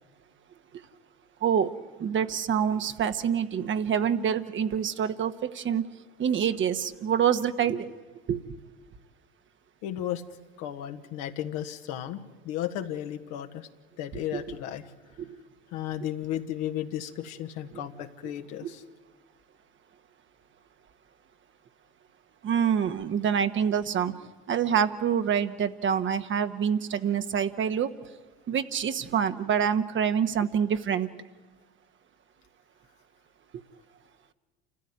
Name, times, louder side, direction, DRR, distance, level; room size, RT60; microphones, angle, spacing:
voice 1, 1.4-1.7 2.0-5.8 6.2-7.9 8.3-8.4 14.3-14.4 15.2-15.4 18.6-18.7 22.4-24.1 24.5-27.9 28.5-31.1, right 8 dB, 40° right, 9 dB, 1.4 m, -26 dB
voice 2, 9.8-10.2 10.6-13.7 14.0-14.9 15.7-18.8, left 11 dB, 60° left, 6 dB, 1.7 m, -34 dB
28.5 x 14.5 x 9.5 m, 1.4 s
hypercardioid pair, 70°, 31 cm